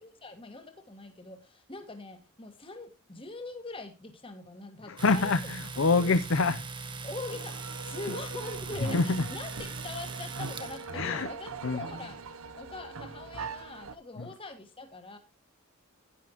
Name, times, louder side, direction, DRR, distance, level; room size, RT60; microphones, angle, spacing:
voice 1, 0.0-5.3 5.9-6.2 7.0-15.2, left 2 dB, 25° left, 1.6 m, -43 dB
voice 2, 4.8-6.6 8.1-8.2 8.8-9.3 10.9-11.3 11.6-11.8 14.2-14.3, left 3 dB, 65° left, 0.7 m, -26 dB
Domestic sounds home sounds, 5.0-10.9, right 4 dB, 20° right, 1.1 m, -40 dB
sound 1, 7.3-14.0, right 4 dB, 80° right, 0.8 m, -42 dB
11.0 x 10.5 x 3.0 m
head